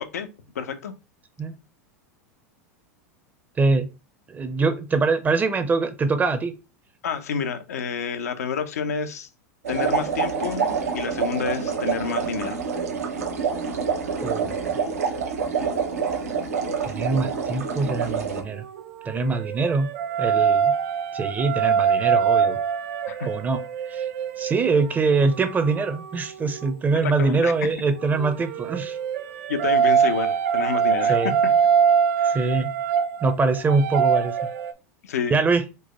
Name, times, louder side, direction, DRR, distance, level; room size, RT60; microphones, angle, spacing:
voice 1, 0.5-0.9 7.0-9.3 9.7-10.7 10.9-12.6 23.1-23.3 26.9-27.7 29.5-31.5 32.2-32.5 35.0-35.4, left 6 dB, 85° left, 8 dB, 0.5 m, -29 dB
voice 2, 3.6-3.9 4.3-6.5 14.2-14.8 16.8-18.6 19.1-19.9 20.2-20.7 21.1-22.6 23.3-23.6 23.9-24.1 24.4-29.0 31.1-31.3 32.3-32.7 33.2-34.3 35.3-35.6, right 4 dB, 20° right, 10 dB, 0.6 m, -23 dB
sound 1, 9.6-18.4, right 5 dB, 85° right, 0.9 m, -27 dB
sound 2, 18.5-26.8 28.0-34.7, right 7 dB, 65° right, 0.5 m, -24 dB
4.5 x 2.1 x 2.9 m, 0.29 s
hypercardioid pair, 100°, 8 cm